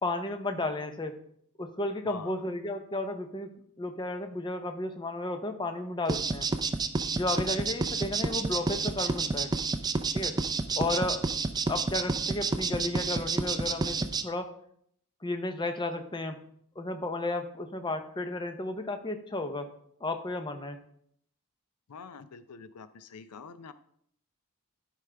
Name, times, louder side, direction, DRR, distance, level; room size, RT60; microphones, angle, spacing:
voice 1, 0.0-1.2 1.6-3.5 3.8-6.5 7.1-9.5 10.1-10.4 10.8-11.3 11.7-14.5 15.2-16.4 16.8-19.7 20.0-20.8, left 2 dB, 20° left, 7 dB, 0.7 m, -33 dB
voice 2, 2.1-2.4 21.9-23.7, left 5 dB, 90° left, 12 dB, 0.5 m, -45 dB
sound 1, 6.1-14.2, right 4 dB, 20° right, 0.4 m, -29 dB
12.5 x 5.0 x 3.4 m, 0.66 s
head